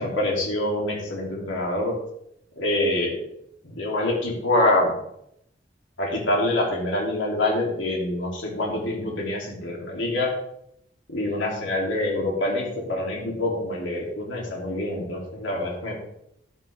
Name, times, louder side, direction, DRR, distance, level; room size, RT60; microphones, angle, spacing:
voice 1, 0.0-1.9 2.6-3.2 3.6-5.0 6.0-10.3 11.1-15.9, left 1 dB, 90° left, -2 dB, 3.2 m, -25 dB
12.0 x 11.0 x 3.6 m, 0.77 s
head